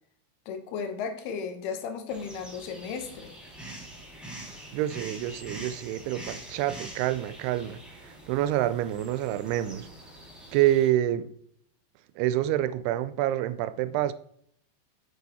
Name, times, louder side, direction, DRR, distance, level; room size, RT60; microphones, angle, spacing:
voice 1, 0.5-3.4, left 6 dB, 75° left, 2.9 m, -35 dB
sound 1, 2.1-10.9, right 1 dB, ahead, 0.5 m, -44 dB
voice 2, 4.7-9.9 10.5-11.3 12.2-14.1, right 13 dB, 85° right, 2.5 m, -27 dB
8.3 x 6.8 x 4.2 m
omnidirectional pair, 4.7 m